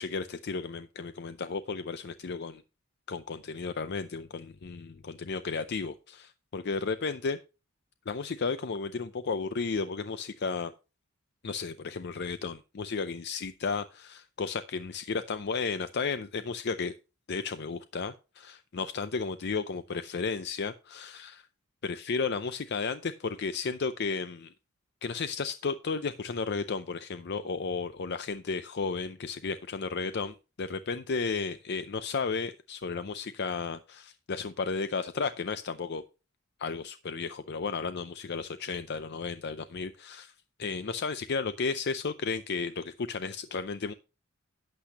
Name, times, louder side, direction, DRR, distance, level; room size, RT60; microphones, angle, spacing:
voice 1, 0.0-2.6 3.1-7.4 8.1-10.7 11.4-16.9 17.3-21.5 21.8-24.5 25.0-36.0 36.6-40.3 40.6-43.9, left 4 dB, 50° left, 11 dB, 0.5 m, -33 dB
12.0 x 8.3 x 2.9 m, 0.30 s
head